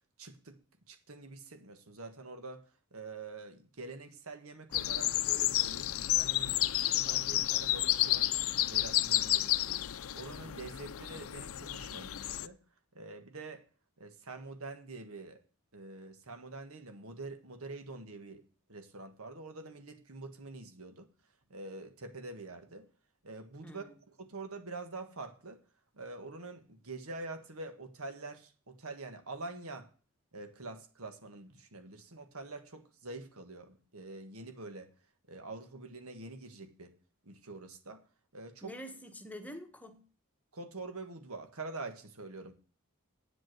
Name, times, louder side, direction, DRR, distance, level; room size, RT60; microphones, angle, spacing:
voice 1, 0.2-0.6 0.9-2.6 2.9-8.3 8.7-9.8 10.1-12.6 12.9-13.6 14.0-15.4 15.7-18.4 18.7-21.1 21.5-22.9 23.2-25.6 25.9-29.9 30.3-34.9 35.3-36.9 37.2-38.0 38.3-38.7 40.5-42.5, right 3 dB, 80° right, 1.6 m, -46 dB
sound 1, 4.7-12.5, left 14 dB, 80° left, 0.5 m, -31 dB
voice 2, 23.6-23.9 38.6-40.1, equal, 5° left, 1.3 m, -46 dB
8.8 x 8.0 x 6.2 m
head